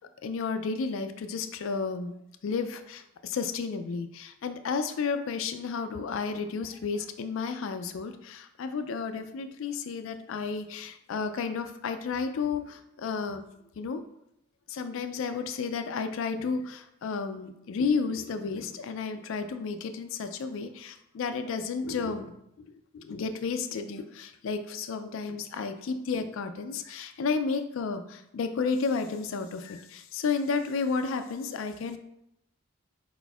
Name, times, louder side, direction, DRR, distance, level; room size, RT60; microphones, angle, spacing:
voice 1, 0.2-2.1 2.4-13.4 13.8-14.0 14.7-22.3 22.9-32.0, left 5 dB, 70° left, 8 dB, 0.3 m, -32 dB
4.4 x 4.1 x 2.3 m, 0.79 s
head